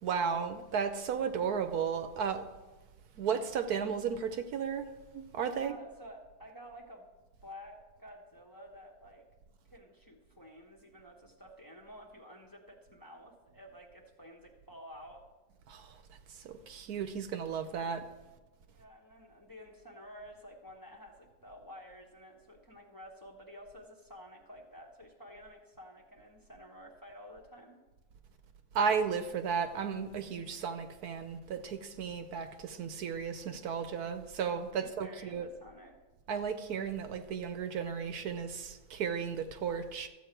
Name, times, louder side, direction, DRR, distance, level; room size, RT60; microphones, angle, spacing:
voice 1, 0.0-2.4 3.2-4.9 5.1-5.8 15.7-16.0 16.3-18.0 28.7-35.5 36.3-40.1, right 6 dB, 70° right, 8 dB, 1.2 m, -34 dB
voice 2, 5.6-7.1 7.4-9.3 9.7-15.2 18.7-27.8 34.8-36.0, equal, 15° left, 0 dB, 1.1 m, -51 dB
13.5 x 7.9 x 4.5 m, 1.2 s
omnidirectional pair, 1.7 m